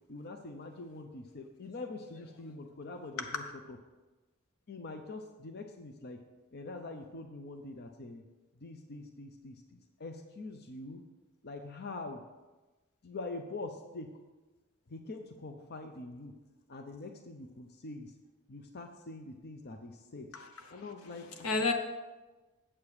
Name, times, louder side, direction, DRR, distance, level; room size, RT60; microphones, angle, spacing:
voice 1, 0.1-3.4 3.7-3.8 4.7-6.2 6.5-8.2 8.6-11.0 11.4-12.2 13.0-14.1 14.9-16.3 16.7-18.1 18.5-20.3 20.7-21.7, left 2 dB, 50° left, 5 dB, 0.6 m, -44 dB
voice 2, 20.3-20.8 21.4-21.7, left 3 dB, 80° left, 5 dB, 1.0 m, -32 dB
8.7 x 7.3 x 4.9 m, 1.2 s
head